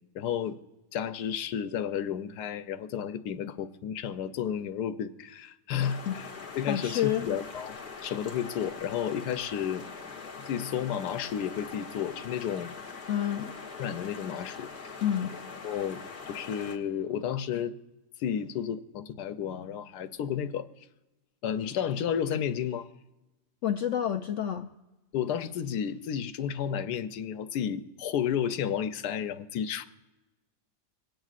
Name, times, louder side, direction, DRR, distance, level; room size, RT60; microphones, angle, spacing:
voice 1, 0.1-0.6 0.9-6.3 6.5-9.9 10.4-12.7 13.8-14.7 15.6-16.0 16.3-17.8 18.2-20.7 21.4-22.9 25.1-29.8, left 8 dB, 90° left, 10 dB, 1.2 m, -32 dB
sound 1, 5.8-16.8, left 4 dB, 35° left, 1.3 m, -43 dB
voice 2, 6.7-7.3 13.1-13.5 15.0-15.4 23.6-24.7, left 10 dB, 70° left, 5 dB, 0.7 m, -28 dB
26.5 x 9.1 x 2.4 m, 1.1 s
omnidirectional pair, 1.7 m